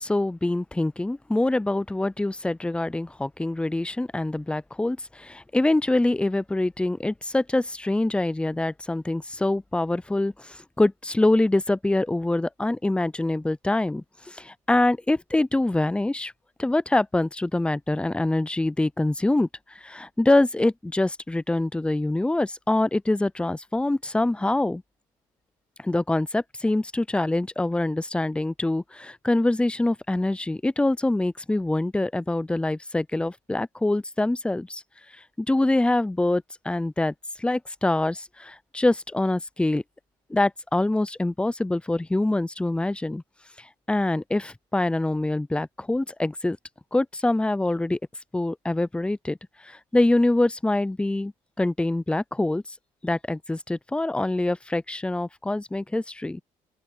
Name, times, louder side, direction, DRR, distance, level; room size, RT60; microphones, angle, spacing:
voice 1, 0.0-16.3 16.6-24.8 25.8-34.8 35.4-39.8 40.3-43.2 43.6-46.6 46.9-48.0 48.3-49.4 49.6-51.3 51.6-52.6 53.0-56.4, left 2 dB, 5° left, 0.5 m, -25 dB
open air
cardioid pair, 95°, 15 cm